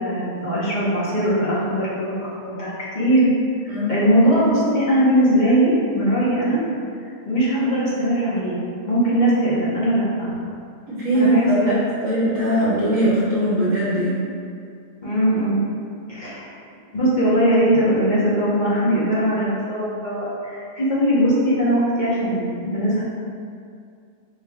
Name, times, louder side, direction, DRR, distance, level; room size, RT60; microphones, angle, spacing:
voice 1, 0.0-3.3 3.9-6.6 7.2-8.6 8.9-10.3 11.1-11.7 15.0-15.6 16.1-16.4 16.9-23.0, equal, 35° left, -8 dB, 0.9 m, -20 dB
voice 2, 3.7-4.0 10.9-11.8 12.0-14.1, right 1 dB, 65° right, -10 dB, 1.2 m, -20 dB
4.9 x 3.2 x 2.3 m, 2.3 s
omnidirectional pair, 1.5 m